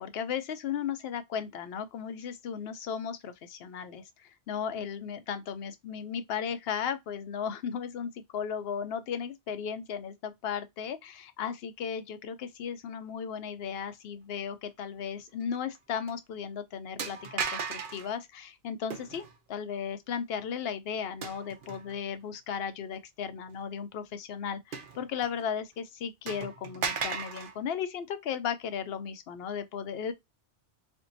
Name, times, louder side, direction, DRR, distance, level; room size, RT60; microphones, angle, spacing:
voice 1, 0.0-19.2 19.5-30.1, left 7 dB, 65° left, 0.8 m, -36 dB
sound 1, 15.5-15.8 16.1-16.2 17.0-18.1 18.9-19.4 21.2-22.0 22.5-22.6 24.7-25.5 25.8-25.9 26.3-27.6, right 6 dB, 55° right, 0.8 m, -36 dB
4.4 x 2.2 x 2.6 m
omnidirectional pair, 1.1 m